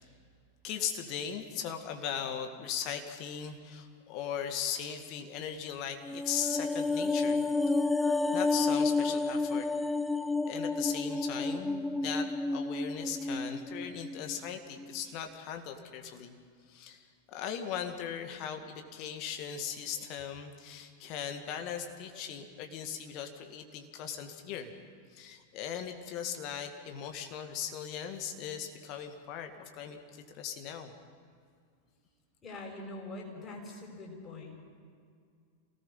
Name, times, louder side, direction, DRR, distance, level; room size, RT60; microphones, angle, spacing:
voice 1, 0.6-7.4 8.3-9.7 10.5-16.4 16.7-24.7 25.1-30.9, left 8 dB, 40° left, 5 dB, 2.1 m, -38 dB
sound 1, 6.0-14.5 14.8-14.9, left 3 dB, 5° left, 0.6 m, -30 dB
voice 2, 32.4-34.7, left 2 dB, 25° left, -1 dB, 6.6 m, -44 dB
27.0 x 18.5 x 5.7 m, 2.2 s
figure-of-eight pair, 90°, 0 cm